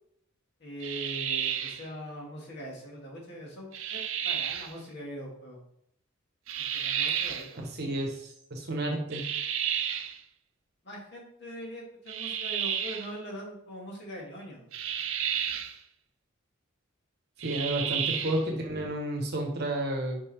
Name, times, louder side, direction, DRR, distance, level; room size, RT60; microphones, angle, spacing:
voice 1, 0.6-5.6 6.7-7.6 10.8-14.7 17.6-17.9, equal, 55° left, -3 dB, 2.1 m, -42 dB
sound 1, 0.8-1.9 3.7-4.7 6.5-7.5 9.1-10.2 12.1-13.1 14.7-15.8 17.4-18.5, right 8 dB, 70° right, 0.5 m, -31 dB
voice 2, 7.8-9.2 17.4-20.2, right 1 dB, 55° right, 2 dB, 1.2 m, -31 dB
5.4 x 5.3 x 3.5 m, 0.73 s
head